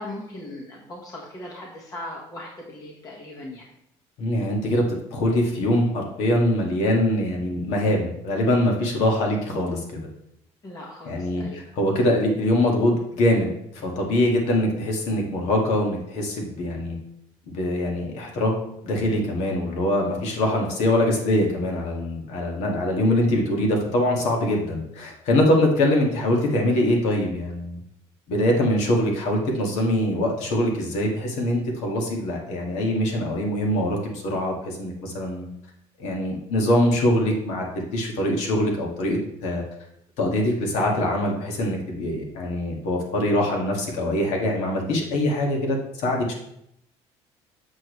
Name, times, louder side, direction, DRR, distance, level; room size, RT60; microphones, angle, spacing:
voice 1, 0.0-3.7 10.6-11.6, left 1 dB, 30° left, -3 dB, 1.5 m, -38 dB
voice 2, 4.2-4.8 5.1-10.1 11.1-11.4 11.8-17.0 17.5-18.6 18.8-27.8 28.3-35.5 36.0-39.6 40.2-46.3, left 1 dB, 75° left, 0 dB, 1.9 m, -23 dB
7.5 x 6.5 x 3.2 m, 0.76 s
cardioid pair, 125°, 12 cm